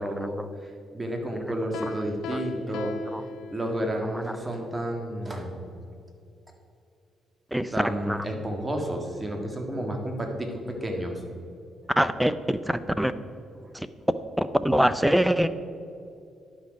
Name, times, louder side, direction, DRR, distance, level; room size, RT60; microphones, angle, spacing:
voice 1, 0.0-3.0 3.5-5.6 7.7-11.2 13.6-13.7, right 1 dB, 20° right, 2 dB, 1.6 m, -31 dB
Piano, 1.7-4.0, left 3 dB, 85° left, 0.5 m, -37 dB
voice 2, 12.0-13.1 13.7-13.9 14.4-15.5, equal, 5° right, 13 dB, 0.4 m, -24 dB
11.0 x 6.3 x 5.2 m, 2.6 s
cardioid pair, 90°, 0 cm